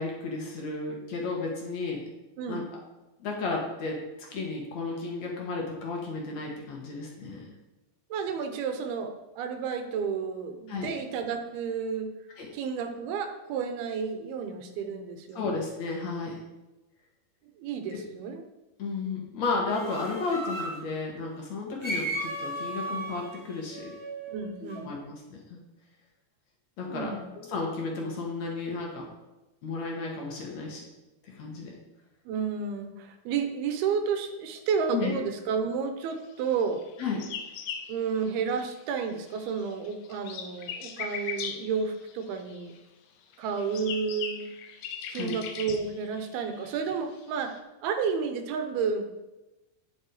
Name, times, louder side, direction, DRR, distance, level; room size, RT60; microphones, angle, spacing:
voice 1, 0.0-2.0 2.5-2.6 3.2-4.0 4.3-7.5 10.7-10.9 12.4-12.5 15.3-16.4 18.8-23.9 24.6-25.6 26.8-27.1 27.5-29.1 29.6-30.8 31.2-31.7 34.9-35.1 37.0-37.2 45.1-45.4, left 4 dB, 55° left, -1 dB, 2.5 m, -33 dB
voice 2, 2.4-2.7 8.1-12.1 12.5-15.6 17.6-18.4 24.3-24.9 26.9-27.3 32.3-36.8 37.9-42.7 43.4-44.4 45.1-49.1, right 6 dB, 85° right, 6 dB, 2.9 m, -31 dB
sound 1, 19.7-20.8 21.8-24.8, right 1 dB, 20° right, 0.7 m, -35 dB
sound 2, 36.7-38.9 39.2-42.8 43.3-47.6, left 7 dB, 75° left, 2.0 m, -39 dB
9.6 x 7.7 x 4.9 m, 1.0 s
omnidirectional pair, 4.4 m